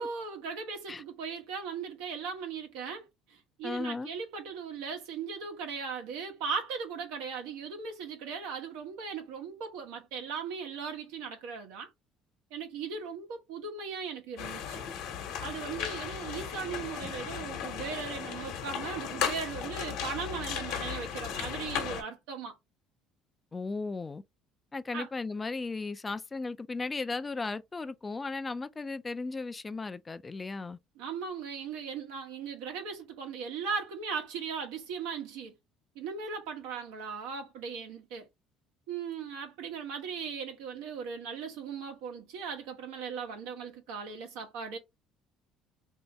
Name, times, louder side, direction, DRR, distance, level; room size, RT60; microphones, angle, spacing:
voice 1, 0.0-11.9 12.5-14.9 15.4-22.6 24.9-25.1 31.0-35.5 35.9-38.3 38.9-44.8, right 6 dB, 90° right, 1.0 m, -38 dB
voice 2, 3.6-4.1 23.5-24.2 24.7-30.8, left 3 dB, 20° left, 0.3 m, -36 dB
sound 1, 14.4-22.0, left 8 dB, 75° left, 0.9 m, -36 dB
3.0 x 2.7 x 3.3 m
cardioid pair, 110°, 0 cm